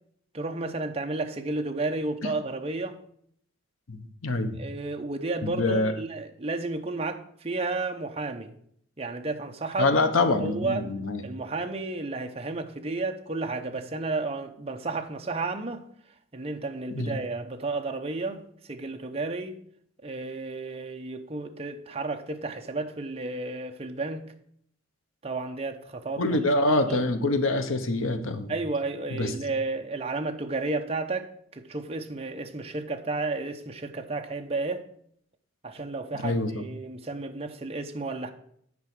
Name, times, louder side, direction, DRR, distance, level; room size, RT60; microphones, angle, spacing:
voice 1, 0.3-3.0 4.6-8.5 9.0-9.9 10.4-10.8 11.2-15.9 16.3-18.4 18.7-19.6 20.0-24.2 25.2-27.0 28.5-34.8 35.6-38.3, right 3 dB, 30° right, 0.7 m, -32 dB
voice 2, 3.9-4.6 5.4-5.9 9.8-11.2 16.9-17.1 26.2-28.5 29.1-29.3 36.2-36.6, left 2 dB, 85° left, 1.0 m, -25 dB
9.6 x 4.8 x 6.0 m
head